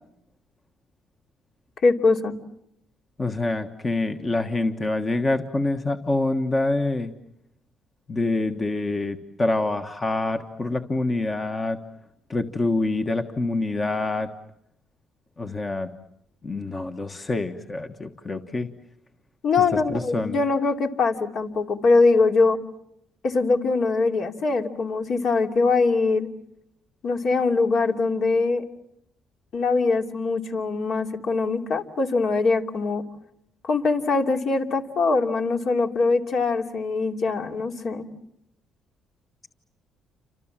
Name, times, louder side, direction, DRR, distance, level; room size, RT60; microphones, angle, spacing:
voice 1, 1.8-2.3 19.4-22.6 23.2-26.3 27.0-28.6 29.5-33.0 33.6-38.1, left 3 dB, 55° left, 3 dB, 2.9 m, -22 dB
voice 2, 3.2-7.1 8.1-11.8 12.3-14.3 15.4-15.9 16.4-18.7 19.7-20.4, left 2 dB, 25° left, 5 dB, 1.4 m, -26 dB
29.5 x 26.5 x 7.5 m, 0.77 s
cardioid pair, 115°, 0 cm